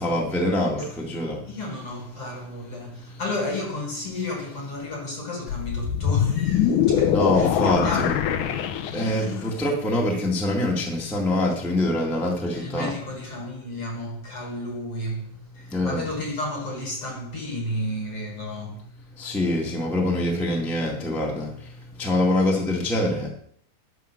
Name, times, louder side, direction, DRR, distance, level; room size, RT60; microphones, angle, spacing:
voice 1, 0.0-1.4 3.1-3.2 7.1-8.1 8.9-12.9 15.7-16.1 19.2-23.3, left 1 dB, ahead, 0.7 m, -25 dB
voice 2, 1.5-8.2 8.9-9.5 12.5-18.9, left 1 dB, 50° left, 1.9 m, -33 dB
sound 1, 5.5-9.5, left 9 dB, 75° left, 2.0 m, -23 dB
11.5 x 5.0 x 6.7 m
omnidirectional pair, 4.3 m